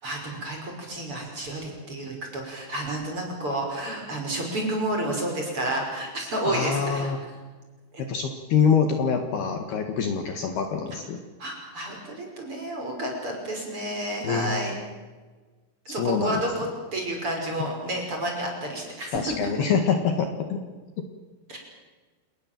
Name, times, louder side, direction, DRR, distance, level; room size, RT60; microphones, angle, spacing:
voice 1, 0.0-7.1 7.9-8.0 11.4-14.7 15.9-16.7 16.9-19.5 21.5-21.6, right 1 dB, 25° right, 1 dB, 6.2 m, -30 dB
voice 2, 6.5-7.2 8.0-11.2 14.2-14.6 16.0-16.4 19.1-20.6 21.0-21.1, left 6 dB, 60° left, 5 dB, 3.3 m, -25 dB
29.0 x 20.5 x 7.6 m, 1.3 s
omnidirectional pair, 5.8 m